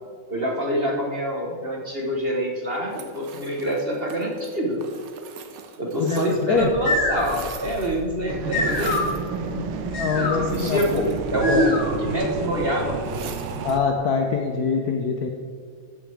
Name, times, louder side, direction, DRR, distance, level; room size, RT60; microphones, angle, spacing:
voice 1, 0.3-4.8 5.8-9.0 10.1-11.7 12.0-13.0, right 1 dB, 35° right, -2 dB, 1.2 m, -26 dB
sound 1, 2.9-6.7 6.9-8.1 8.6-9.3 10.4-11.6 13.0-13.8, right 6 dB, 60° right, 0.9 m, -41 dB
voice 2, 6.0-6.7 9.6-10.8 11.5-11.6 13.6-15.3, left 5 dB, 65° left, 3 dB, 1.0 m, -24 dB
sound 2, 6.6-12.2, left 2 dB, 85° left, 2.6 m, -28 dB
sound 3, 8.3-13.8, right 5 dB, 85° right, 1.6 m, -31 dB
14.5 x 7.0 x 3.5 m, 2.2 s
omnidirectional pair, 2.2 m